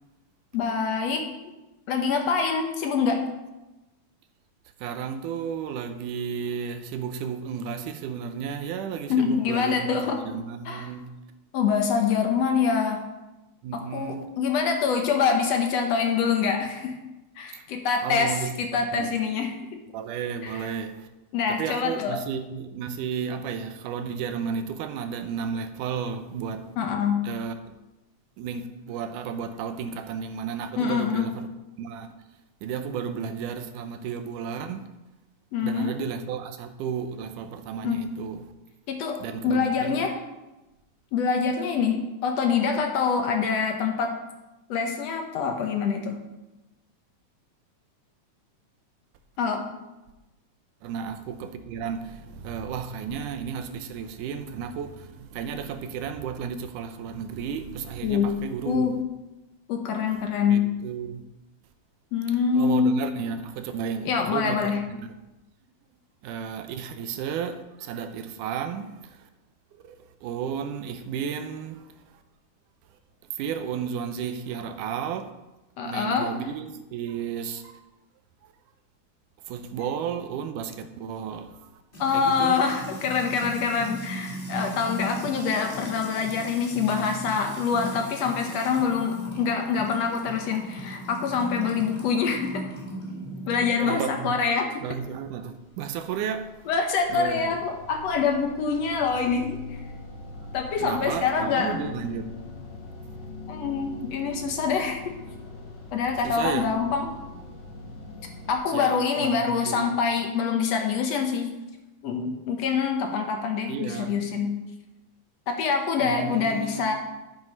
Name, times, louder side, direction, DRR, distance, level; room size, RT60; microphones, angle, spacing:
voice 1, 0.5-1.3 1.9-3.2 9.1-10.2 10.7-10.9 11.5-13.0 13.7-17.0 17.4-19.5 20.4-20.6 21.3-22.2 26.8-27.2 30.8-31.3 35.5-35.9 37.8-38.0 38.9-39.2 39.4-40.1 41.1-44.1 44.7-46.2 49.4-49.6 58.0-58.4 58.7-58.9 59.7-60.7 62.1-63.0 64.1-64.8 75.8-76.3 82.0-92.6 93.5-94.9 96.7-99.6 100.5-101.8 103.5-105.1 105.9-107.1 108.5-111.5 112.0-114.5 115.5-116.9, left 6 dB, 65° left, 1.9 m, -25 dB
voice 2, 4.8-11.1 13.6-14.3 18.0-19.2 19.9-21.1 21.5-26.7 27.2-27.8 28.4-31.5 31.8-32.1 32.6-34.9 35.6-38.5 39.2-40.1 50.8-59.0 60.1-60.2 60.5-61.2 62.5-65.1 66.2-69.3 69.7-72.2 73.3-75.3 75.8-77.8 78.4-78.5 79.5-81.7 82.1-82.6 93.8-94.4 94.8-96.7 97.1-97.6 100.8-102.4 106.2-106.8 108.7-109.9 113.7-114.2 116.0-116.9, right 7 dB, 85° right, 2.3 m, -33 dB
Music / Water tap faucet / Trickle dribble, 81.9-93.7, right 1 dB, 20° left, 2.1 m, -38 dB
sound 1, 95.4-108.6, left 3 dB, 45° left, 1.6 m, -42 dB
11.0 x 7.5 x 5.2 m
omnidirectional pair, 3.6 m